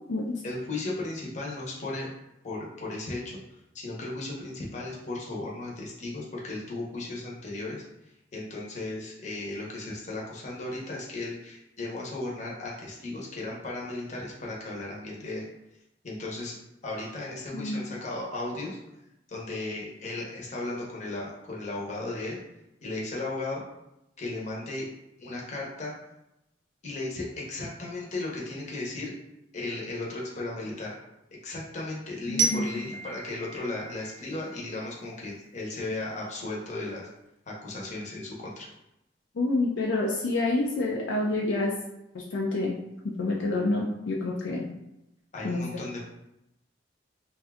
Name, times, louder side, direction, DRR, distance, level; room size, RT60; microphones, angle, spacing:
voice 1, 0.4-2.1 2.4-3.4 3.7-7.8 8.3-15.4 16.0-16.6 16.8-18.8 19.3-22.4 22.8-23.6 24.2-24.9 25.2-25.9 26.8-29.1 29.5-31.0 31.4-37.1 37.5-38.7 45.3-46.0, left 2 dB, 40° left, -3 dB, 0.8 m, -35 dB
voice 2, 17.5-17.9 32.3-32.6 39.4-41.8 42.1-42.8 43.0-44.7 45.4-45.6, left 2 dB, 75° left, -2 dB, 0.4 m, -28 dB
Glockenspiel, 32.4-35.2, right 4 dB, 45° right, 0.4 m, -33 dB
2.6 x 2.3 x 3.4 m, 0.88 s
head